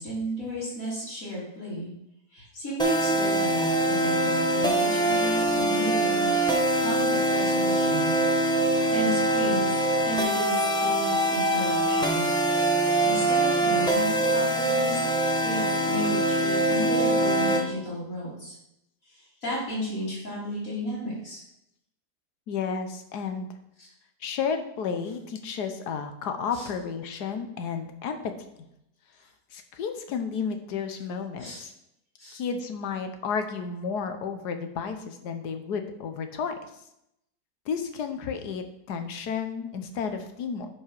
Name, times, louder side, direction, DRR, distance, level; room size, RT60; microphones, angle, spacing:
voice 1, 0.0-1.9 2.3-6.3 6.8-8.1 8.7-12.3 13.0-15.0 15.4-18.5 19.0-21.4 23.8-23.9 26.5-26.7 31.4-31.6 32.2-32.4, equal, 55° left, -12 dB, 3.8 m, -33 dB
sound 1, 2.8-17.6, right 1 dB, 5° left, 0.7 m, -24 dB
voice 2, 22.5-23.5 24.2-28.5 29.5-31.7 32.3-36.5 37.7-40.7, left 6 dB, 75° left, 7 dB, 1.5 m, -32 dB
10.5 x 4.9 x 4.7 m, 0.81 s
omnidirectional pair, 1.8 m